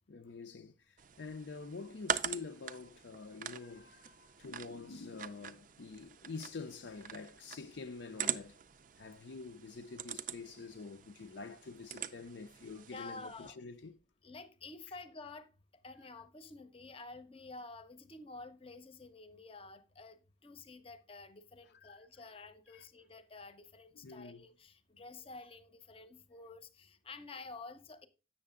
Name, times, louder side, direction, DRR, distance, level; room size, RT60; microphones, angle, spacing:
voice 1, 0.1-8.6 9.0-14.0 14.9-15.0 21.6-22.1 22.7-22.8 24.0-24.5, left 4 dB, 65° left, 0.5 m, -47 dB
sound 1, 1.0-13.5, right 8 dB, 45° right, 0.4 m, -43 dB
voice 2, 12.9-13.5 14.2-15.5 15.8-28.1, left 3 dB, 30° left, 0.7 m, -50 dB
7.7 x 6.6 x 3.6 m
head